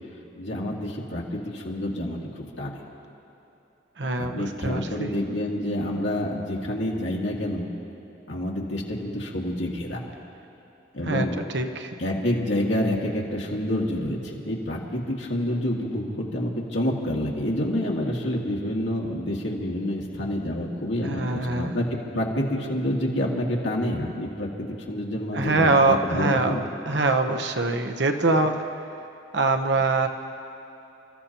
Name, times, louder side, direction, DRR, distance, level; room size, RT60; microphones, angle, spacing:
voice 1, 0.4-2.7 4.2-7.7 8.3-10.0 10.9-11.4 12.0-21.8 22.1-26.6, left 1 dB, 75° left, -2 dB, 2.2 m, -28 dB
voice 2, 4.0-5.1 11.0-11.9 21.0-21.8 25.3-28.6 29.3-30.1, right 3 dB, 60° right, 6 dB, 0.9 m, -24 dB
29.5 x 14.5 x 3.0 m, 3.0 s
head